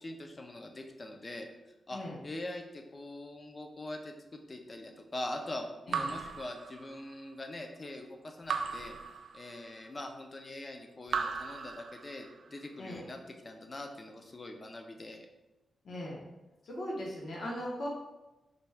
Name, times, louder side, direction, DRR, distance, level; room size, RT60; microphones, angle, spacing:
voice 1, 0.0-9.0 9.3-13.2 13.4-15.3, left 1 dB, 30° left, 4 dB, 0.4 m, -43 dB
voice 2, 5.9-6.2 12.8-13.1 15.8-16.2 16.6-17.9, left 1 dB, 60° left, -3 dB, 0.9 m, -39 dB
Raindrop / Drip, 5.9-7.3 8.5-9.9 11.1-12.5, right 5 dB, 85° right, 0.3 m, -37 dB
3.9 x 2.3 x 3.3 m, 1.0 s
wide cardioid pair, 115°, 0 cm